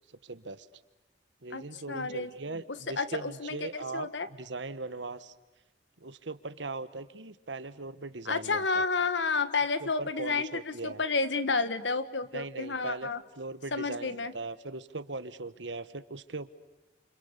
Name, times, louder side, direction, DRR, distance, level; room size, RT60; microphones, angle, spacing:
voice 1, 0.2-0.7 1.4-5.3 6.0-8.8 9.8-11.0 12.3-13.1 13.4-16.5, right 3 dB, 85° right, 13 dB, 1.3 m, -39 dB
voice 2, 1.5-4.3 8.2-13.2 13.7-14.3, left 4 dB, 85° left, 12 dB, 1.6 m, -31 dB
30.0 x 28.0 x 6.8 m, 1.0 s
head